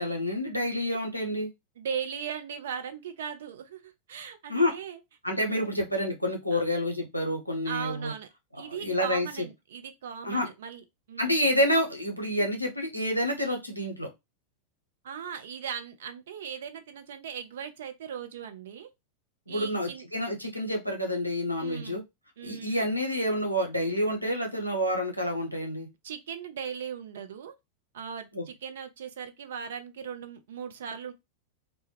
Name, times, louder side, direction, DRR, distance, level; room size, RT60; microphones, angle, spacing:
voice 1, 0.0-1.5 4.5-4.7 5.2-8.1 8.7-9.5 10.2-10.5 11.2-14.1 19.5-22.0 22.4-25.9 28.3-28.4, left 1 dB, 90° left, 0.7 m, -28 dB
voice 2, 1.8-5.0 5.5-5.7 6.5-6.6 7.6-8.3 8.6-11.5 15.0-18.9 19.5-20.1 21.6-22.0 22.4-22.9 26.0-27.5 27.9-31.1, right 7 dB, 60° right, 0.4 m, -38 dB
2.2 x 2.1 x 3.0 m
figure-of-eight pair, 90°, 0 cm